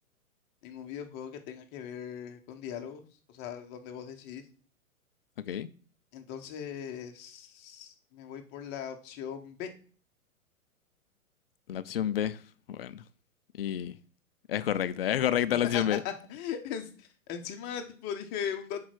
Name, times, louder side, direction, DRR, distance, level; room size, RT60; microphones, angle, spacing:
voice 1, 0.6-3.0 3.3-4.4 6.1-9.7 15.7-18.8, left 8 dB, 25° left, 0.9 m, -39 dB
voice 2, 5.4-5.7 11.7-12.4 12.7-13.0 13.5-14.0 14.5-16.0, left 10 dB, 45° left, 0.5 m, -29 dB
6.0 x 4.7 x 6.0 m
figure-of-eight pair, 110°, 43 cm